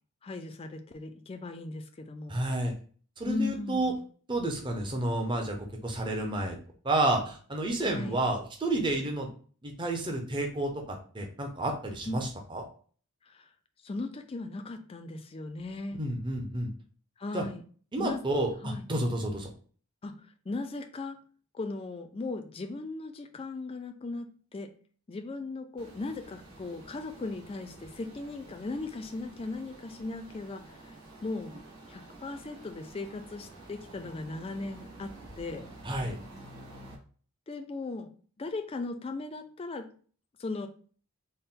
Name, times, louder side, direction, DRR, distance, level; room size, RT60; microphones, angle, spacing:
voice 1, 0.2-2.4 3.2-4.0 7.8-8.2 12.1-12.3 13.3-13.5 13.8-16.0 17.2-17.6 18.0-18.2 18.6-18.8 20.0-21.2 21.5-24.7 25.1-30.7 31.2-31.5 31.9-35.7 37.5-38.1 38.4-39.9 40.4-40.7, left 3 dB, 25° left, 7 dB, 0.3 m, -37 dB
voice 2, 2.3-2.7 3.2-3.9 4.3-6.6 6.8-9.3 9.6-12.6 16.0-16.7 17.3-17.4 17.9-19.5 35.8-36.2, right 1 dB, 20° right, 2 dB, 0.6 m, -30 dB
sound 1, 25.8-36.9, right 1 dB, 80° right, 1.3 m, -49 dB
4.2 x 2.1 x 3.6 m, 0.43 s
head